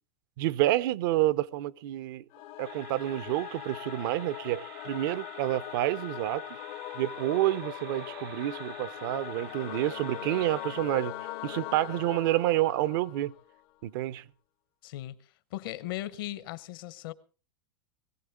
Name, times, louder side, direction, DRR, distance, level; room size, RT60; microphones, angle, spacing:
voice 1, 0.4-2.2 2.6-6.5 6.9-11.1 11.4-13.3 13.8-14.2, right 15 dB, 65° right, 0.7 m, -29 dB
Singing / Musical instrument, 2.3-13.6, left 15 dB, 50° left, 0.7 m, -41 dB
sound 1, 2.6-10.8, right 7 dB, 85° right, 3.9 m, -50 dB
Bowed string instrument, 9.2-12.7, left 13 dB, 85° left, 2.6 m, -46 dB
voice 2, 14.8-15.2 15.5-17.1, left 15 dB, 70° left, 1.1 m, -37 dB
21.0 x 15.0 x 3.6 m
supercardioid pair, 125°, 12 cm